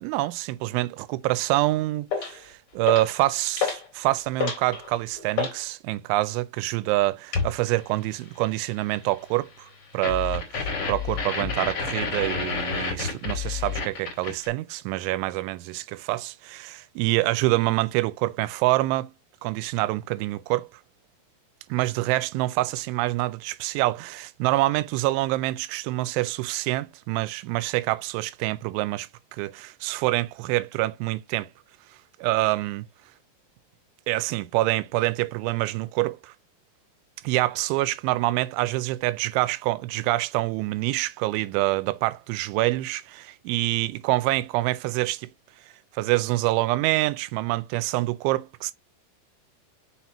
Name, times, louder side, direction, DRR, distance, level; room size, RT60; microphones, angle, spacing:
voice 1, 0.0-9.7 9.9-19.1 19.4-20.7 21.7-31.5 32.2-32.8 34.1-36.3 37.2-45.3 45.9-48.7, right 18 dB, 90° right, 3.0 m, -26 dB
sound 1, 2.1-2.4 2.9-3.2 3.6-3.9 4.2-5.6 7.3-7.6 10.0-14.5, left 5 dB, 40° left, 2.5 m, -29 dB
6.0 x 5.8 x 3.0 m
omnidirectional pair, 5.4 m